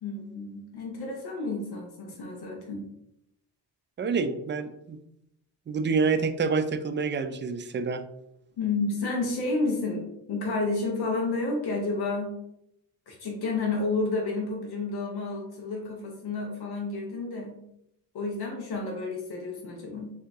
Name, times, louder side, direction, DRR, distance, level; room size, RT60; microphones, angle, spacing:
voice 1, 0.0-2.8 8.6-10.0 10.3-12.3 13.1-17.6 18.1-20.1, left 3 dB, 75° left, 1 dB, 1.0 m, -30 dB
voice 2, 4.0-5.0 5.7-8.0, right 5 dB, 30° right, 9 dB, 0.4 m, -27 dB
3.7 x 2.8 x 3.5 m, 0.79 s
cardioid pair, 80°, 39 cm